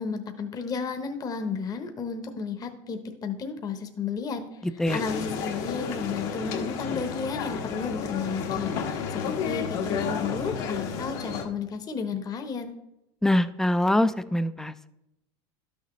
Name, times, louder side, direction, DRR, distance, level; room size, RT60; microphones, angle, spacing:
voice 1, 0.0-4.6 4.9-12.7, left 5 dB, 25° left, 6 dB, 0.9 m, -33 dB
sound 1, 4.8-11.4, left 6 dB, 65° left, 1.3 m, -31 dB
voice 2, 13.2-14.9, left 1 dB, 5° left, 14 dB, 0.3 m, -24 dB
12.0 x 6.5 x 3.1 m, 0.88 s
supercardioid pair, 125°, 14 cm